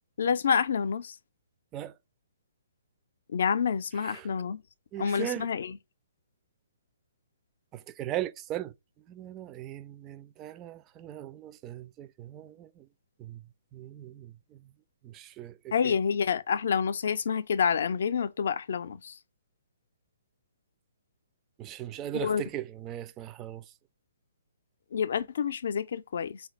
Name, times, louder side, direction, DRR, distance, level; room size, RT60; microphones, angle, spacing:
voice 1, 0.2-1.1 3.3-4.6 5.0-5.8 15.7-19.1 22.1-22.4 24.9-26.4, left 6 dB, 60° left, 0.4 m, -28 dB
voice 2, 4.0-4.3 4.9-5.5 7.7-8.7 9.1-12.9 13.2-13.4 13.7-14.6 15.0-15.9 21.6-23.6, right 12 dB, 25° right, 0.3 m, -39 dB
4.3 x 2.3 x 3.9 m
figure-of-eight pair, 130°, 0 cm